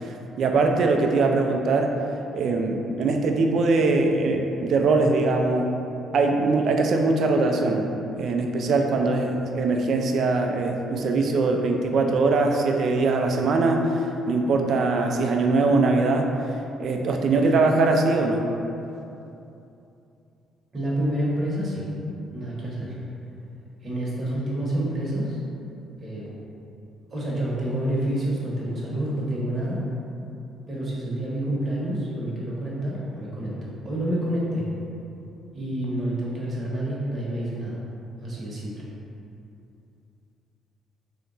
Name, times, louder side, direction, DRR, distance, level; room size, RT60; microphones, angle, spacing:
voice 1, 0.4-1.9 2.3-5.7 6.1-7.8 8.2-13.8 14.3-16.3 16.8-18.4, right 3 dB, 55° right, 3 dB, 0.4 m, -22 dB
voice 2, 20.7-21.9 22.3-23.0 23.8-25.4 26.0-26.2 27.1-29.8 30.7-33.5 33.8-34.6 35.5-37.8 38.2-38.7, right 1 dB, 30° right, -6 dB, 1.0 m, -28 dB
3.4 x 2.8 x 3.9 m, 2.8 s
cardioid pair, 130°, 0 cm